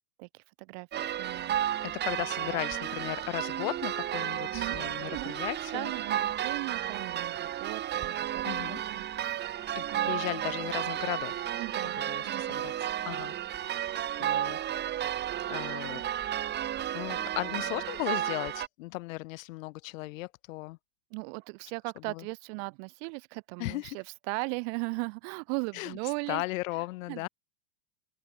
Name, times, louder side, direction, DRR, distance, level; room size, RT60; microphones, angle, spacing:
voice 1, 0.2-1.6 4.5-5.4 5.7-9.4 9.9-10.1 11.6-12.6 21.1-26.4 26.7-27.3, right 39 dB, 55° right, 4.0 m, -38 dB
sound 1, 0.9-18.7, right 11 dB, 25° right, 1.2 m, -33 dB
voice 2, 1.8-5.9 8.4-8.8 9.7-11.4 12.0-12.7 13.1-13.4 13.6-13.8 14.2-14.6 15.5-16.0 16.9-20.8 22.1-22.2 23.6-24.0 25.7-26.0 26.3-27.3, left 20 dB, 65° left, 5.4 m, -36 dB
supercardioid pair, 130°, 43 cm